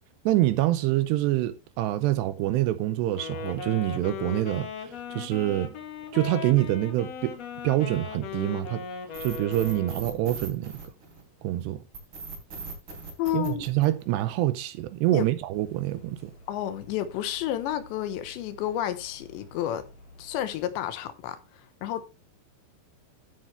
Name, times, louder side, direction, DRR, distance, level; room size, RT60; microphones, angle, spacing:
voice 1, 0.3-5.7 6.1-7.4 7.6-8.8 9.2-10.7 11.4-11.8 13.3-16.3, right 15 dB, 80° right, 2.6 m, -26 dB
Wind instrument woodwind instrument, 3.1-10.3, left 7 dB, 50° left, 2.3 m, -38 dB
sound 1, 9.1-11.4 11.9-14.4, right 4 dB, 30° right, 3.8 m, -40 dB
voice 2, 13.2-13.6 15.1-15.3 16.5-19.9 20.2-22.0, left 11 dB, 80° left, 3.2 m, -31 dB
sound 2, 15.5-20.6, left 1 dB, 30° left, 2.7 m, -52 dB
13.5 x 7.9 x 3.3 m
omnidirectional pair, 5.3 m